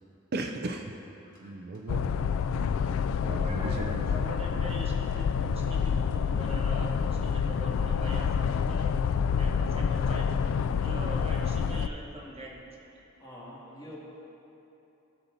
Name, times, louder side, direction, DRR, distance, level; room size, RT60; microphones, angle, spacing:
voice 1, 0.3-0.9 1.4-2.0 2.5-2.7 3.2-4.2, right 2 dB, 50° right, 3 dB, 0.5 m, -36 dB
sound 1, 1.9-11.9, left 6 dB, 85° left, 0.3 m, -28 dB
voice 2, 3.3-9.0 9.2-12.7, equal, 30° right, -2 dB, 1.1 m, -43 dB
voice 3, 13.2-14.0, left 1 dB, 20° left, -8 dB, 2.3 m, -46 dB
17.5 x 7.0 x 2.7 m, 3.0 s
head